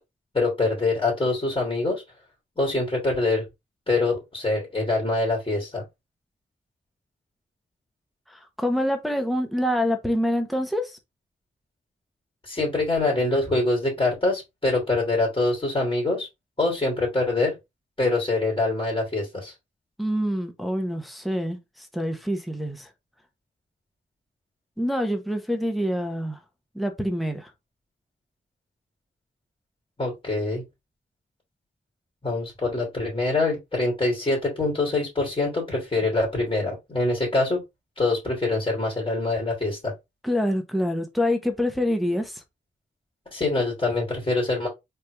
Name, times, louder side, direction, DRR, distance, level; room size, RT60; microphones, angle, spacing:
voice 1, 0.3-2.0 2.6-3.4 3.9-5.8 12.4-16.3 16.6-17.5 18.0-19.5 30.0-30.6 32.2-37.6 38.0-39.9 43.3-44.7, left 2 dB, 25° left, 2.8 m, -24 dB
voice 2, 8.3-11.0 20.0-22.9 24.8-26.4 26.7-27.5 40.2-42.4, equal, ahead, 1.0 m, -26 dB
4.2 x 3.4 x 3.4 m
wide cardioid pair, 85°, 20 cm